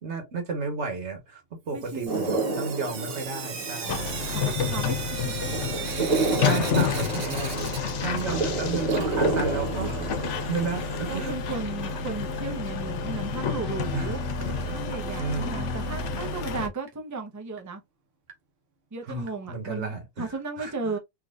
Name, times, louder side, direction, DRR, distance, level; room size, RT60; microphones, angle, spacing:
voice 1, 0.0-1.4 1.7-4.0 6.4-11.4 13.9-14.1 14.5-14.8 15.2-15.8 19.1-20.7, right 4 dB, 75° right, 1.4 m, -33 dB
voice 2, 1.7-2.4 3.8-5.3 8.0-8.4 11.1-14.2 14.7-17.8 18.9-21.0, right 3 dB, 20° right, 0.6 m, -35 dB
Sink (filling or washing) / Drip, 1.8-8.5 8.8-10.7 11.9-12.0 12.3-12.4 12.6-12.7 15.6-15.7 16.3-16.4 16.9-17.0 17.6-17.7 18.3-18.4 19.3-19.4, right 6 dB, 60° right, 1.0 m, -38 dB
sound 1, 2.1-11.3, right 3 dB, 35° right, 1.3 m, -31 dB
sound 2, 3.9-16.7, left 5 dB, 90° left, 1.0 m, -30 dB
3.6 x 2.7 x 2.4 m
omnidirectional pair, 1.2 m